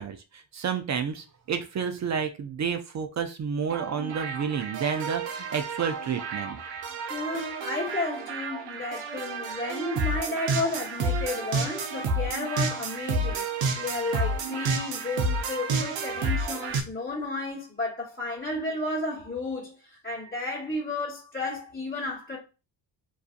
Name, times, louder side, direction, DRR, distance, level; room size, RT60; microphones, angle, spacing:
voice 1, 0.0-6.6, right 6 dB, 40° right, 0.4 m, -30 dB
sound 1, 3.7-16.8, right 3 dB, 70° right, 0.7 m, -30 dB
voice 2, 7.1-13.4 13.8-22.4, left 2 dB, 20° left, 1.3 m, -32 dB
2.5 x 2.4 x 2.4 m
cardioid pair, 75°, 46 cm